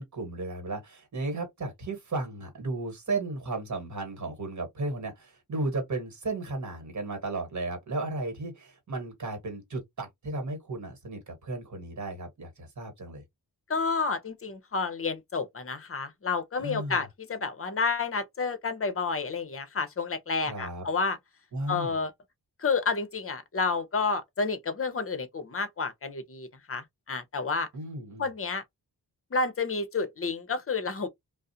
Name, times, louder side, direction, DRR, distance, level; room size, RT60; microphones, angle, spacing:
voice 1, 0.0-13.2 16.6-17.1 20.4-20.8 21.5-22.0 27.7-28.3, right 2 dB, 45° right, 1.3 m, -34 dB
voice 2, 13.7-21.2 21.7-22.1 22.6-27.7 28.2-28.6 29.3-31.1, left 4 dB, 35° left, 0.7 m, -30 dB
2.4 x 2.0 x 2.7 m
wide cardioid pair, 65°, 39 cm